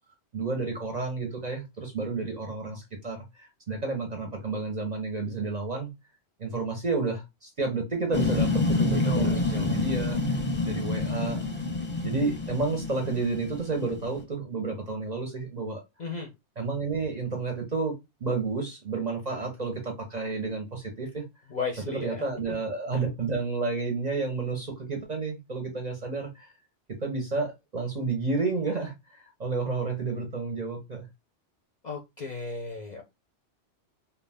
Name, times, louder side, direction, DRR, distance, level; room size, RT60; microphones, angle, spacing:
voice 1, 0.3-5.9 6.4-10.2 10.6-11.4 12.0-15.8 16.6-17.9 18.2-21.2 21.8-26.5 27.0-31.1, right 3 dB, 45° right, 0.6 m, -31 dB
sound 1, 8.1-14.2, left 3 dB, 10° left, 0.6 m, -28 dB
voice 2, 9.0-9.4 16.0-16.3 21.5-22.6 31.8-33.0, left 4 dB, 50° left, 0.5 m, -35 dB
2.3 x 2.2 x 3.3 m
omnidirectional pair, 1.2 m